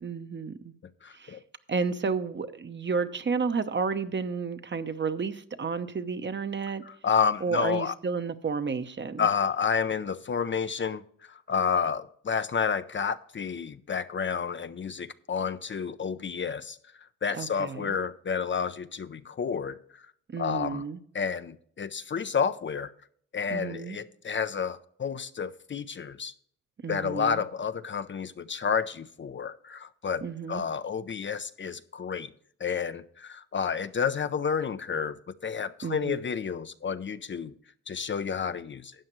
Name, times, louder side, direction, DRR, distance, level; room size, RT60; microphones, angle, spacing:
voice 1, 0.0-0.7 1.1-1.4 1.7-6.8 7.4-9.3 17.3-18.0 20.3-21.0 23.5-24.0 26.8-27.4 30.2-30.6 35.8-36.2, right 5 dB, 35° right, 1.0 m, -31 dB
voice 2, 1.0-1.4 6.8-7.9 9.2-11.0 11.3-16.8 17.2-19.8 20.4-20.8 21.1-22.9 23.3-26.3 26.9-32.3 32.6-37.5 37.9-38.9, left 6 dB, 35° left, 0.6 m, -30 dB
13.0 x 8.7 x 3.1 m
cardioid pair, 70°, 32 cm